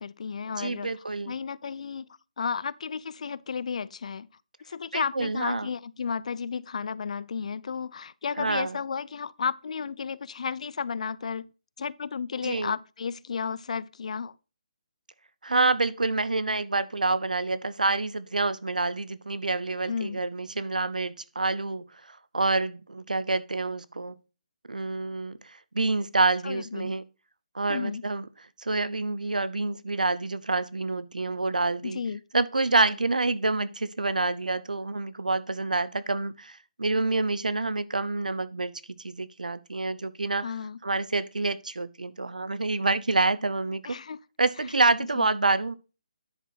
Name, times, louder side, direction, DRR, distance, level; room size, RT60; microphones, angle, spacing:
voice 1, 0.0-0.9 1.3-2.1 2.4-4.3 4.7-11.5 11.8-14.3 19.9-20.2 26.4-26.9 27.7-28.0 31.8-32.2 40.4-40.8 43.8-44.2 45.2-45.3, left 6 dB, 60° left, 0.5 m, -33 dB
voice 2, 0.6-1.3 4.9-5.7 8.4-8.8 12.4-12.7 15.4-24.2 24.7-27.0 27.5-28.3 28.6-32.0 32.3-40.5 40.8-44.0 44.4-45.8, right 3 dB, 85° right, 0.7 m, -27 dB
10.0 x 6.1 x 4.1 m
figure-of-eight pair, 145°, 4 cm